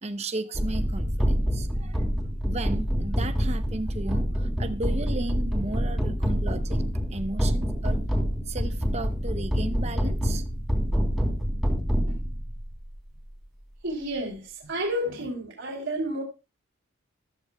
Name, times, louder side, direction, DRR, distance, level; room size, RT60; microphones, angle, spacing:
voice 1, 0.0-2.0 2.4-6.8 7.1-8.0 8.5-10.4, right 2 dB, 30° right, 0.8 m, -35 dB
sound 1, 0.5-12.7, equal, ahead, 3.4 m, -26 dB
voice 2, 13.8-16.2, right 1 dB, 70° right, 3.3 m, -31 dB
14.5 x 13.5 x 2.3 m
head